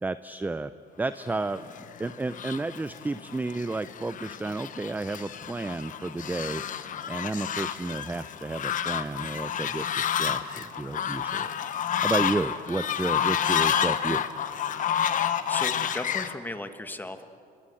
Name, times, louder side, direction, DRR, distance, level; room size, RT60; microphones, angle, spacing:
voice 1, 0.0-0.7 1.0-1.7 2.0-6.6 7.1-11.5 12.0-14.2, right 2 dB, 10° right, 13 dB, 0.5 m, -32 dB
Fowl, 1.5-16.3, left 9 dB, 50° left, 1.1 m, -30 dB
voice 2, 15.1-17.3, left 2 dB, 10° left, 8 dB, 1.5 m, -37 dB
27.0 x 23.0 x 7.7 m, 2.7 s
cardioid pair, 110°, 17 cm